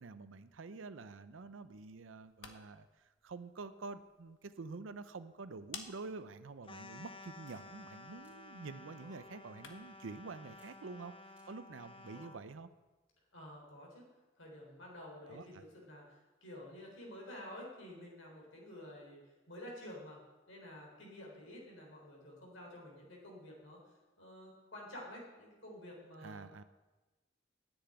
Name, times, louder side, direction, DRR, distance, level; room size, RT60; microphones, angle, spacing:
voice 1, 0.0-12.7 15.3-15.6 26.2-26.6, right 3 dB, 80° right, 11 dB, 0.6 m, -48 dB
sound 1, 2.1-10.1, left 6 dB, 70° left, 1.3 m, -57 dB
sound 2, 6.6-12.4, left 2 dB, 30° left, 0.7 m, -53 dB
sound 3, 7.5-7.7 8.2-8.4 8.9-9.5 10.6-10.8 11.4-11.5 12.1-12.6, right 1 dB, 10° right, 2.8 m, -64 dB
voice 2, 13.3-14.0 14.4-20.2 20.5-23.8 24.2-26.7, left 1 dB, 90° left, -2 dB, 3.8 m, -50 dB
10.0 x 8.0 x 8.9 m, 1.2 s
head